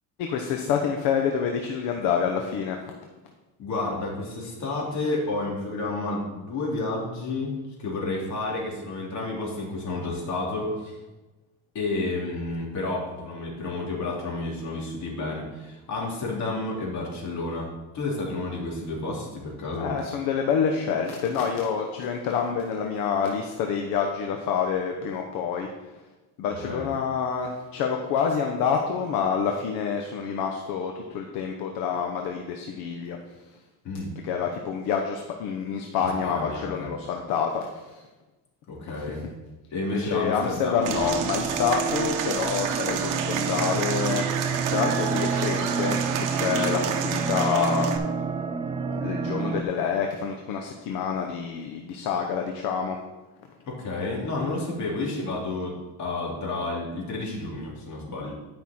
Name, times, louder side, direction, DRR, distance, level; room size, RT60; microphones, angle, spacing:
voice 1, 0.2-2.8 19.8-25.7 26.4-33.2 34.2-38.0 38.9-39.0 39.9-47.9 49.0-53.0, left 6 dB, 70° left, 3 dB, 1.0 m, -27 dB
voice 2, 3.6-10.9 11.7-17.7 17.9-19.9 26.6-26.9 33.8-34.1 36.0-36.9 38.7-39.2 39.7-41.2 41.5-41.6 53.7-58.3, left 2 dB, 50° left, -3 dB, 3.0 m, -31 dB
sound 1, 40.8-49.6, right 5 dB, 15° right, 0.3 m, -29 dB
Applause / Crowd, 40.8-48.0, right 8 dB, 55° right, 1.0 m, -30 dB
10.5 x 5.6 x 4.4 m, 1.1 s
cardioid pair, 130°, 36 cm